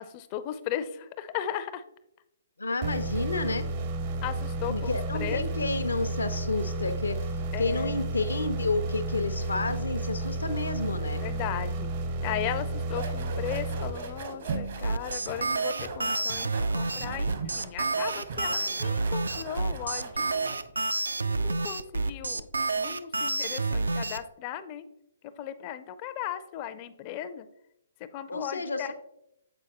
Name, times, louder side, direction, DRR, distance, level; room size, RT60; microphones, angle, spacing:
voice 1, 0.0-1.8 4.2-5.4 7.5-8.0 11.2-11.9 12.2-20.6 21.2-22.5 22.8-24.8 25.2-27.5 28.0-28.9, left 11 dB, 35° left, 12 dB, 0.4 m, -36 dB
voice 2, 2.6-3.7 4.7-7.2 7.6-11.2 28.3-28.9, left 3 dB, 80° left, 9 dB, 0.6 m, -30 dB
sound 1, 2.8-14.5, right 2 dB, 40° right, 0.6 m, -32 dB
sound 2, 12.9-20.7, right 4 dB, 60° right, 0.9 m, -39 dB
sound 3, 14.8-24.2, right 3 dB, 80° right, 0.3 m, -29 dB
7.8 x 4.5 x 2.9 m, 0.79 s
figure-of-eight pair, 130°, 0 cm